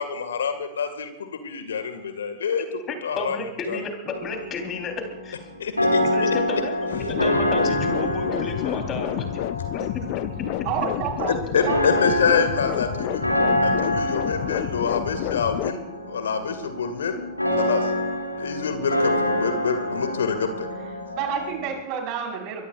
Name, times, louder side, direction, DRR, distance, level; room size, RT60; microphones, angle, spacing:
voice 1, 0.0-3.4 3.7-3.8 5.6-6.0 11.3-13.2 13.6-15.8 16.1-17.3 17.6-17.9 18.4-20.7, left 6 dB, 65° left, 8 dB, 2.1 m, -26 dB
voice 2, 2.9-4.9 5.2-5.4 6.0-9.4 9.7-10.1, left 4 dB, 30° left, 3 dB, 4.1 m, -32 dB
sound 1, 4.1-21.7, left 1 dB, 85° left, 2.9 m, -27 dB
sound 2, 6.9-15.7, left 17 dB, 45° left, 0.7 m, -30 dB
voice 3, 10.7-11.4 11.6-11.8 21.1-22.6, right 7 dB, 45° right, 0 dB, 5.2 m, -28 dB
24.0 x 22.5 x 2.6 m, 0.95 s
figure-of-eight pair, 90°, 0 cm